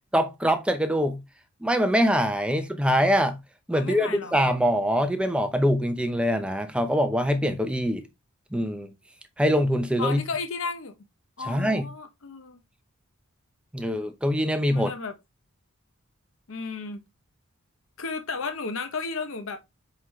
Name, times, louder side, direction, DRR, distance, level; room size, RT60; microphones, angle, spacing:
voice 1, 0.1-1.2 1.6-3.4 3.7-8.1 8.5-8.9 9.4-10.2 11.5-11.9 13.7-14.9, equal, 5° right, 0.7 m, -24 dB
voice 2, 3.7-4.4 10.0-10.9 11.4-12.6 14.7-15.1 16.5-17.0 18.0-19.6, left 4 dB, 60° left, 0.8 m, -33 dB
8.0 x 3.8 x 3.1 m
head